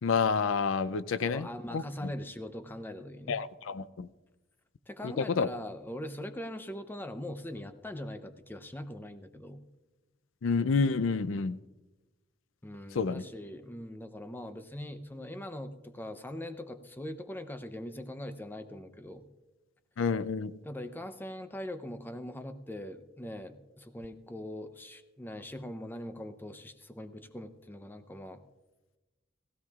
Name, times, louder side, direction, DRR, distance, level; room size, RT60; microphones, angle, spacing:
voice 1, 0.0-1.5 1.7-1.8 3.3-4.1 5.0-5.5 10.4-11.6 12.9-13.2 20.0-20.6, left 5 dB, 80° left, 15 dB, 0.5 m, -29 dB
voice 2, 1.2-3.4 4.9-9.7 12.6-19.3 20.6-28.4, left 1 dB, 10° left, 9 dB, 0.6 m, -41 dB
17.5 x 16.0 x 2.4 m, 1.1 s
head